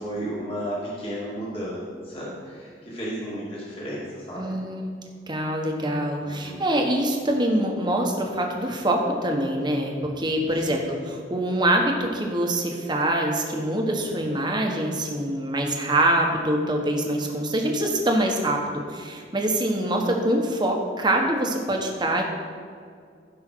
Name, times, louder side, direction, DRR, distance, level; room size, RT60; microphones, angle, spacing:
voice 1, 0.0-4.6 6.2-6.6 10.5-10.8, equal, 30° left, -7 dB, 2.4 m, -33 dB
voice 2, 4.4-4.9 5.3-18.6 18.9-22.2, right 1 dB, 25° right, 1 dB, 1.2 m, -24 dB
15.5 x 5.5 x 4.6 m, 2.2 s
head